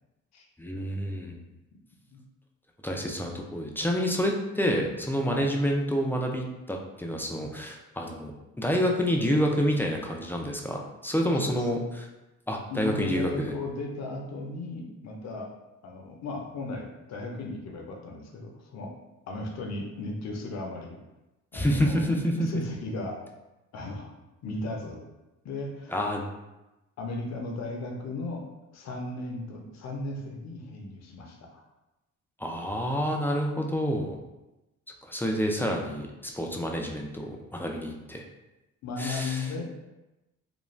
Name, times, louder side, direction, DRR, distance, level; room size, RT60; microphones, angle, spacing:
voice 1, 0.6-1.4 2.8-8.3 8.6-12.1 12.5-13.5 21.5-22.5 25.9-26.3 32.4-34.2 35.0-38.2 39.0-39.5, equal, 5° left, 1 dB, 0.3 m, -28 dB
voice 2, 12.7-15.5 15.8-18.9 19.3-21.0 21.5-22.1 22.4-23.2 23.7-24.1 24.4-25.0 25.4-26.0 27.0-28.5 28.7-31.6 38.8-39.6, left 2 dB, 60° left, 1 dB, 0.6 m, -36 dB
2.5 x 2.2 x 3.1 m, 1.0 s
cardioid pair, 90°, 30 cm